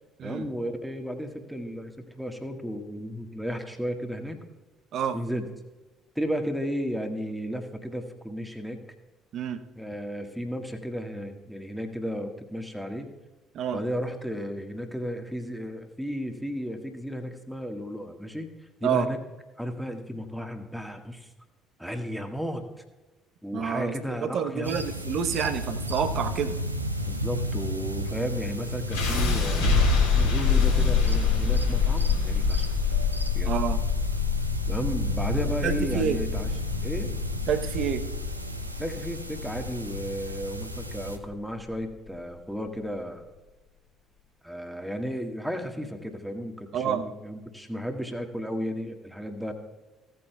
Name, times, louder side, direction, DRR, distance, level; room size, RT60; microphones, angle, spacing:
voice 1, 0.2-4.4 5.1-5.4 6.1-8.8 9.7-13.1 13.7-18.5 18.8-19.2 19.6-21.3 21.8-22.7 23.4-24.9 27.0-32.7 33.3-33.5 34.6-37.1 38.8-43.2 44.4-49.5, equal, ahead, 5 dB, 1.6 m, -34 dB
voice 2, 23.5-23.9 24.3-26.6 33.5-33.8 35.6-36.2 37.5-38.0 46.7-47.0, right 8 dB, 50° right, 10 dB, 0.9 m, -28 dB
sound 1, 24.6-41.2, equal, 90° right, 0.6 m, -33 dB
sound 2, 28.9-40.9, left 5 dB, 75° left, 3.8 m, -25 dB
17.0 x 8.9 x 2.3 m, 1.1 s
figure-of-eight pair, 50°, 0 cm